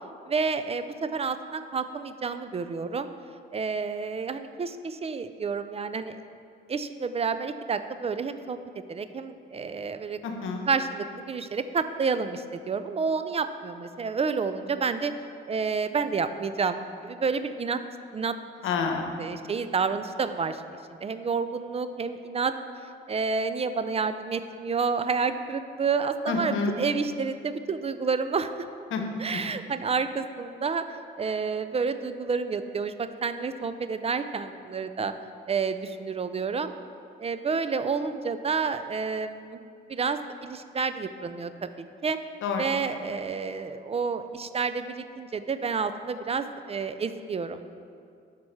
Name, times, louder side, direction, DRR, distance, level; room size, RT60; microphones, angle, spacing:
voice 1, 0.3-3.1 3.5-6.2 6.7-10.2 10.7-15.1 15.5-17.8 18.1-18.4 19.2-20.6 21.0-22.5 23.1-28.7 29.2-30.9 31.2-35.1 35.5-36.7 37.2-39.6 39.9-42.2 42.6-47.6, right 5 dB, 30° right, 10 dB, 0.4 m, -29 dB
voice 2, 10.2-10.6 18.6-19.3 26.3-26.8 28.9-29.0 42.4-42.7, left 5 dB, 80° left, 4 dB, 1.0 m, -28 dB
7.7 x 6.0 x 5.6 m, 2.4 s
cardioid pair, 90°, 20 cm